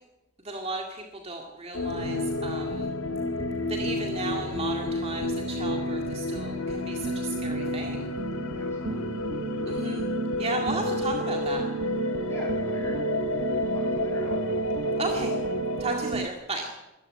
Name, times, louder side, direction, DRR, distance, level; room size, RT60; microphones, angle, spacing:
voice 1, 0.4-2.9 3.7-8.1 9.7-10.1 10.4-11.6 15.0-15.4 15.8-16.7, right 2 dB, 30° right, 2 dB, 2.1 m, -34 dB
sound 1, 1.7-15.9, left 4 dB, 70° left, 1.8 m, -31 dB
sound 2, 1.9-16.3, right 4 dB, 60° right, 0.9 m, -33 dB
voice 2, 8.5-9.2 9.5-9.8 12.3-13.0 13.7-14.4, right 1 dB, 10° left, 0 dB, 7.6 m, -44 dB
22.0 x 14.0 x 9.5 m, 1.0 s
head